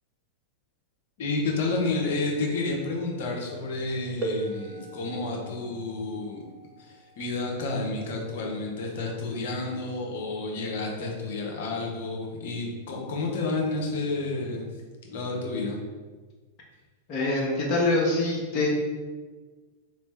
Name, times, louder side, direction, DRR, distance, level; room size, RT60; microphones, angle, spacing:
voice 1, 1.2-6.4 6.8-14.7 15.1-15.8, left 3 dB, 55° left, -1 dB, 0.9 m, -30 dB
sound 1, 4.2-9.6 10.7-10.8 11.6-11.8, right 2 dB, 25° right, 0.7 m, -39 dB
voice 2, 17.1-18.7, left 2 dB, 35° left, -4 dB, 1.1 m, -24 dB
3.7 x 3.2 x 3.3 m, 1.4 s
figure-of-eight pair, 95°, 0 cm